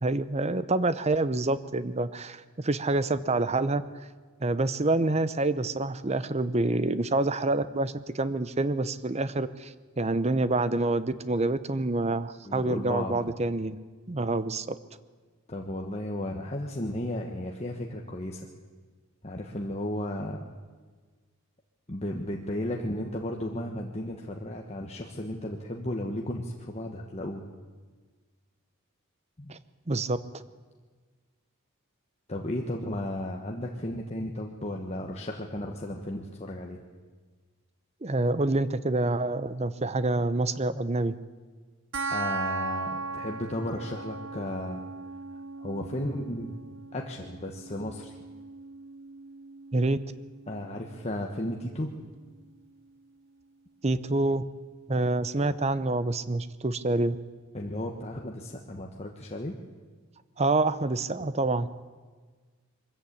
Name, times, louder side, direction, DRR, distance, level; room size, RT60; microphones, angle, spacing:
voice 1, 0.0-3.8 4.4-13.8 14.1-14.8 29.5-29.6 29.9-30.2 38.0-41.1 49.7-50.0 53.8-54.4 54.9-57.2 60.4-61.7, right 2 dB, 30° right, 14 dB, 0.7 m, -27 dB
voice 2, 12.4-13.2 15.5-18.5 19.2-20.4 21.9-27.4 29.4-29.6 32.3-36.8 42.1-44.8 45.6-46.6 46.9-48.2 50.5-52.1 57.5-59.5, left 1 dB, 30° left, 1 dB, 1.3 m, -34 dB
sound 1, 41.9-52.9, right 3 dB, 55° right, 1.0 m, -39 dB
23.0 x 14.5 x 8.6 m, 1.4 s
head